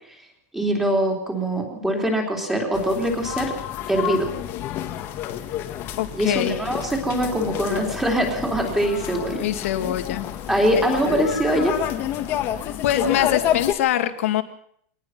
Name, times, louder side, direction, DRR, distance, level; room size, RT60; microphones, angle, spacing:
voice 1, 0.5-3.5 3.9-4.3 6.1-9.4 10.5-11.7, right 1 dB, 5° right, 1 dB, 3.7 m, -23 dB
sound 1, 2.7-13.7, left 11 dB, 25° left, 1.7 m, -29 dB
voice 2, 6.0-6.6 9.3-10.3 10.7-10.8 12.8-14.4, left 11 dB, 55° left, 9 dB, 2.1 m, -23 dB
24.5 x 19.0 x 6.0 m, 0.67 s
supercardioid pair, 175°, 8 cm